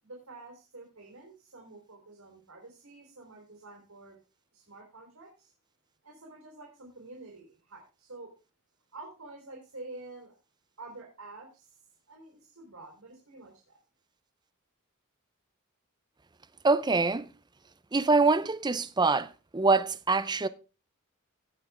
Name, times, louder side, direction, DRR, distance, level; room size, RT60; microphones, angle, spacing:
voice 1, 0.0-4.2 4.5-5.5 6.0-8.3 8.9-10.3 10.8-11.8 12.1-13.8, right 2 dB, 75° right, 3.8 m, -48 dB
voice 2, 16.6-17.3 17.9-20.5, right 3 dB, 20° right, 0.5 m, -25 dB
18.0 x 6.0 x 3.5 m
head